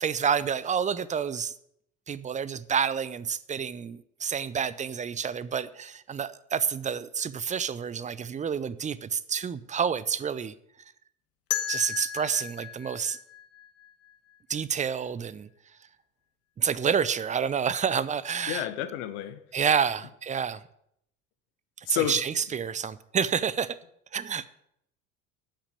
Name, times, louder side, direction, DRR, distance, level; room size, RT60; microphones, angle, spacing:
voice 1, 0.0-1.5 2.1-10.5 11.7-13.2 14.5-15.5 16.6-18.7 19.5-20.6 21.8-23.8 24.1-24.4, right 7 dB, 20° right, 0.6 m, -29 dB
sound 1, 11.5-14.4, left 10 dB, 40° left, 1.2 m, -35 dB
voice 2, 18.5-19.4 21.9-22.2, left 11 dB, 65° left, 1.2 m, -30 dB
9.9 x 5.9 x 8.4 m
hypercardioid pair, 70°, 38 cm